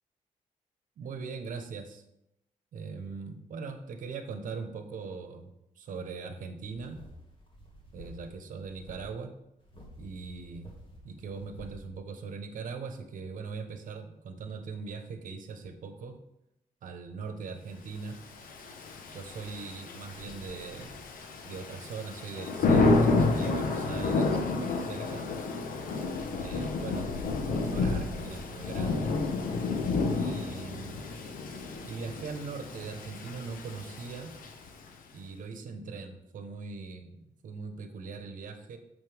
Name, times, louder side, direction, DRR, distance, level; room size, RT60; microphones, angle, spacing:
voice 1, 1.0-2.0 2.7-7.0 7.9-9.3 10.0-10.7 11.0-16.2 16.8-18.2 19.1-21.0 21.4-25.3 26.4-27.1 27.5-29.2 30.2-31.1 31.8-34.3 35.1-38.8, right 5 dB, 75° right, 7 dB, 1.1 m, -40 dB
sound 1, 6.7-8.3 8.6-9.1 9.6-11.8, equal, 40° left, 2.2 m, -50 dB
Thunder / Rain, 18.3-34.9, left 3 dB, 85° left, 1.0 m, -30 dB
9.3 x 6.8 x 3.5 m, 0.83 s
wide cardioid pair, 135°, 14 cm